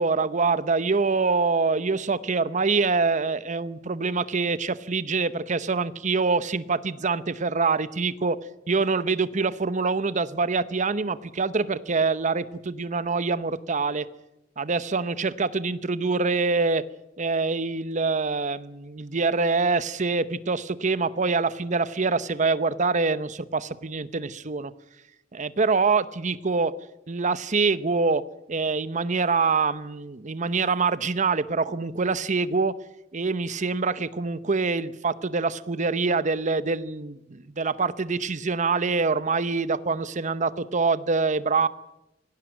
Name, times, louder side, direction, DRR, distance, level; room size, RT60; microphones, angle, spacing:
voice 1, 0.0-8.4 8.7-14.1 14.6-16.8 17.2-24.7 25.3-26.7 27.1-32.8 33.1-41.7, right 4 dB, 40° right, 15 dB, 0.8 m, -25 dB
18.5 x 17.0 x 9.1 m, 0.92 s
head